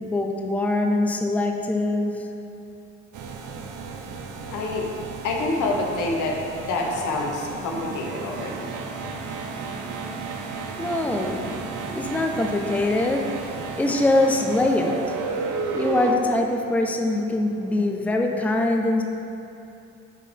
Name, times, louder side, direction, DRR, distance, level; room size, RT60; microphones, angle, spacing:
voice 1, 0.0-2.2 10.8-11.6 11.9-15.2 15.7-19.0, left 2 dB, 5° left, 2 dB, 0.5 m, -23 dB
sound 1, 3.1-16.1, right 4 dB, 80° right, 0.6 m, -33 dB
voice 2, 4.5-4.9 5.2-6.4 6.7-8.7, left 2 dB, 80° left, 0 dB, 1.0 m, -27 dB
6.5 x 3.8 x 5.1 m, 2.7 s
cardioid pair, 90°, 30 cm